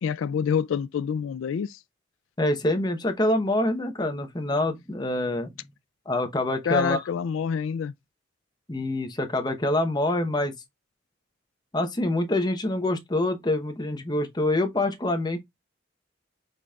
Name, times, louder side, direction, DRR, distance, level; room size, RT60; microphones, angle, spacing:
voice 1, 0.0-1.8 6.7-7.9, left 7 dB, 85° left, 0.3 m, -27 dB
voice 2, 2.4-5.5 6.1-7.0 8.7-10.5 11.7-15.4, left 1 dB, 20° left, 0.9 m, -26 dB
5.3 x 4.1 x 2.3 m
head